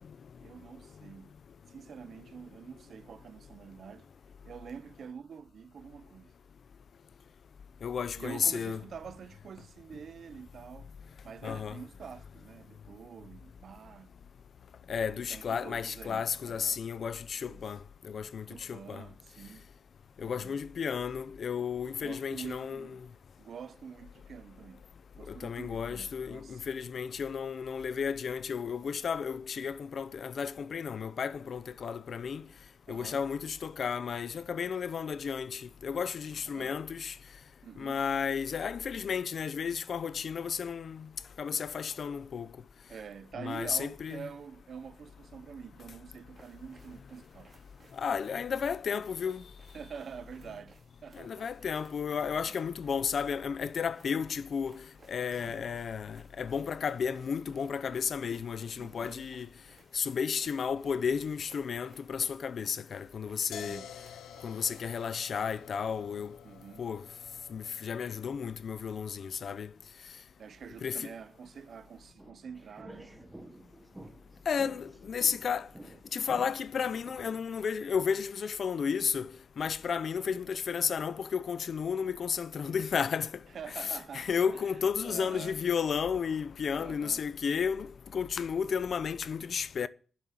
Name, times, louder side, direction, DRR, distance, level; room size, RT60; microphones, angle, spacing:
voice 1, 0.4-1.3 1.7-4.1 4.4-6.3 8.2-10.9 11.2-14.1 15.1-16.8 17.4-17.7 18.5-19.7 20.2-20.6 21.9-23.0 23.4-24.9 25.1-26.6 32.9-33.2 36.4-36.8 37.6-38.0 42.9-47.5 49.7-51.7 52.3-52.6 55.4-55.7 58.8-59.3 63.5-63.9 66.4-66.9 70.4-73.1 83.5-85.6 86.7-87.3, right 6 dB, 50° right, 0.7 m, -47 dB
voice 2, 7.8-8.8 11.4-11.8 14.9-17.8 18.0-19.0 20.2-22.9 25.3-32.4 32.9-37.2 37.8-41.1 41.4-42.5 43.4-44.2 47.9-49.4 51.1-59.5 59.9-63.8 64.4-66.4 66.8-67.0 67.5-69.7 70.8-71.1 74.5-75.7 76.1-79.3 79.6-83.4 84.1-89.9, left 6 dB, 50° left, 0.7 m, -33 dB
sound 1, 46.3-65.6, right 3 dB, 35° right, 4.8 m, -63 dB
sound 2, 63.5-69.3, left 8 dB, 90° left, 0.9 m, -50 dB
sound 3, 72.1-77.4, right 1 dB, 10° right, 1.6 m, -51 dB
10.5 x 7.7 x 8.3 m
wide cardioid pair, 145°, 0 cm